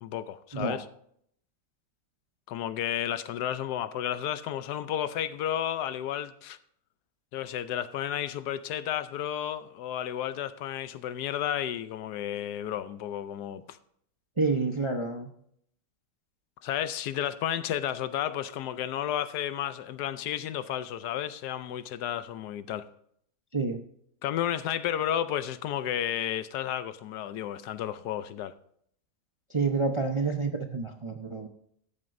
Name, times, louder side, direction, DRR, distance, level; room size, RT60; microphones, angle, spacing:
voice 1, 0.0-0.8 2.5-6.6 7.3-13.8 16.6-22.8 24.2-28.5, left 10 dB, 80° left, 1.2 m, -32 dB
voice 2, 14.4-15.3 23.5-23.8 29.5-31.5, right 4 dB, 30° right, 0.5 m, -28 dB
13.5 x 11.0 x 2.6 m
omnidirectional pair, 1.7 m